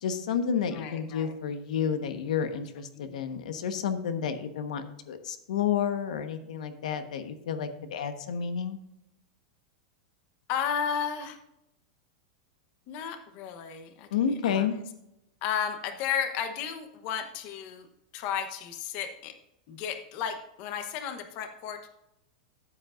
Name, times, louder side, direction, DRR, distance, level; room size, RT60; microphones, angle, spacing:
voice 1, 0.0-8.8 14.1-14.8, left 7 dB, 85° left, 8 dB, 1.2 m, -30 dB
voice 2, 0.7-1.3 3.0-3.2 10.5-11.4 12.9-14.1 14.4-14.7 15.4-17.9 18.1-19.3 19.7-21.8, left 8 dB, 35° left, 7 dB, 1.0 m, -33 dB
14.0 x 7.9 x 2.5 m, 0.83 s
supercardioid pair, 165°, 4 cm